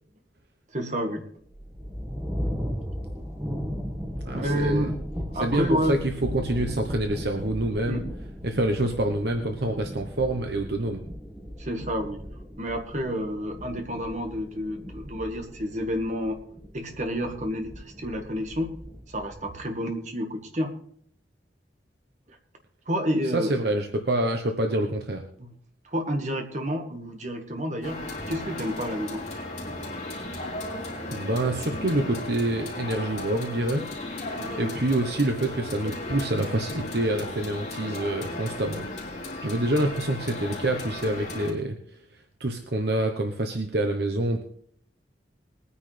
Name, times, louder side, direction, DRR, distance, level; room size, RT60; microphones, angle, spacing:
voice 1, 0.7-1.2 4.3-4.9 5.3-6.0 7.9-8.0 11.6-12.2 12.6-16.4 16.7-18.7 19.1-20.7 22.3-22.4 22.9-23.7 25.4-25.5 25.9-28.0 28.3-29.2 34.3-34.8, equal, 40° right, 4 dB, 1.7 m, -29 dB
sound 1, 1.4-19.4, equal, 10° right, 1.6 m, -37 dB
voice 2, 4.1-4.9 5.4-8.0 8.4-11.0 23.3-25.2 31.1-33.8 34.6-38.9 39.4-41.8 42.4-44.4, right 1 dB, 60° right, 4 dB, 1.0 m, -26 dB
sound 2, 27.8-41.5, left 2 dB, 40° left, 3.3 m, -35 dB
21.0 x 9.7 x 3.4 m, 0.63 s
head